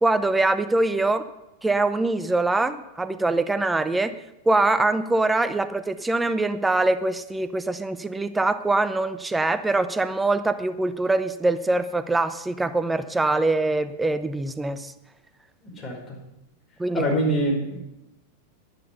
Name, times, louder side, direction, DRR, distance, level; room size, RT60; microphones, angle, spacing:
voice 1, 0.0-1.2 1.6-4.1 4.5-14.9 16.8-17.0, right 2 dB, 10° right, 13 dB, 0.7 m, -23 dB
voice 2, 15.6-16.2 16.9-17.8, equal, 20° left, -2 dB, 5.0 m, -25 dB
11.0 x 10.5 x 5.6 m, 0.89 s
figure-of-eight pair, 90°, 0 cm